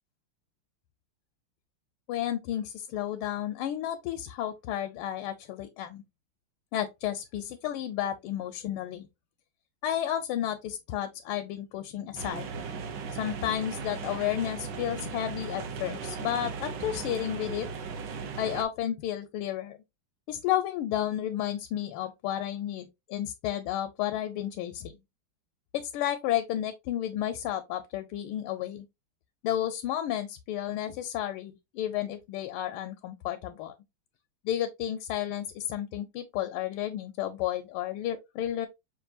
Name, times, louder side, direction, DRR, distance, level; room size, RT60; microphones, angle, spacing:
voice 1, 2.1-6.0 6.7-9.1 9.8-12.5 13.1-17.7 18.4-19.8 20.3-24.9 25.7-28.9 29.4-33.7 34.4-38.7, left 11 dB, 80° left, 1.4 m, -32 dB
sound 1, 12.2-18.6, right 5 dB, 65° right, 1.3 m, -37 dB
6.0 x 2.5 x 2.5 m
omnidirectional pair, 2.4 m